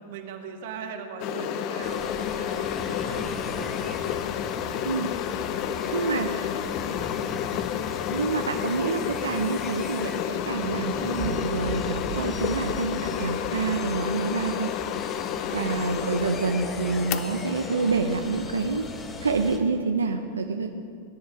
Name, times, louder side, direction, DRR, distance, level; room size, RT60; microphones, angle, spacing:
voice 1, 0.1-4.0 4.5-4.9 5.2-6.7, right 6 dB, 60° right, 4 dB, 1.8 m, -40 dB
sound 1, 1.2-19.7, left 11 dB, 45° left, 0.6 m, -31 dB
sound 2, 1.8-19.6, left 3 dB, 20° left, 1.4 m, -39 dB
voice 2, 4.8-5.2 5.9-6.5 8.1-14.7 15.5-18.9 19.2-20.7, right 4 dB, 85° right, 5 dB, 0.6 m, -27 dB
sound 3, 11.2-15.5, right 7 dB, 40° right, 0.9 m, -39 dB
20.0 x 10.5 x 5.1 m, 2.5 s
hypercardioid pair, 100°, 0 cm